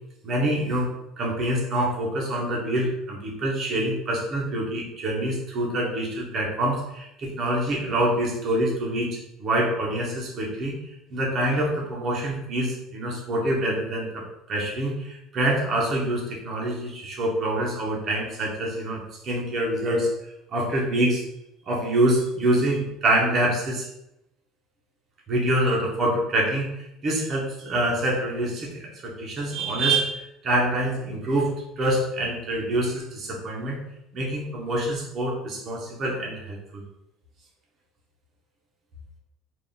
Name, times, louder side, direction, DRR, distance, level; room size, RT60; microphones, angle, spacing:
voice 1, 0.2-10.7 11.1-20.1 20.5-21.2 21.7-23.9 25.3-26.7 27.0-31.5 31.8-33.8 34.1-36.8, right 1 dB, 25° right, -2 dB, 0.8 m, -26 dB
3.5 x 2.5 x 3.9 m, 0.84 s
cardioid pair, 180°, 0 cm